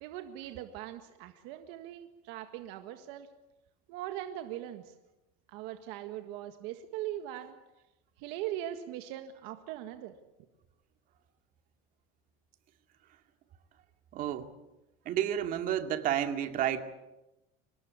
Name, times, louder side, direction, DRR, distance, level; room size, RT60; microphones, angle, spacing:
voice 1, 0.0-3.3 3.9-4.8 5.5-7.6 8.2-10.1, right 12 dB, 70° right, 7 dB, 1.7 m, -40 dB
voice 2, 14.1-14.5 15.0-16.8, right 10 dB, 45° right, 7 dB, 2.4 m, -30 dB
24.5 x 20.0 x 8.5 m, 0.98 s
supercardioid pair, 135°, 19 cm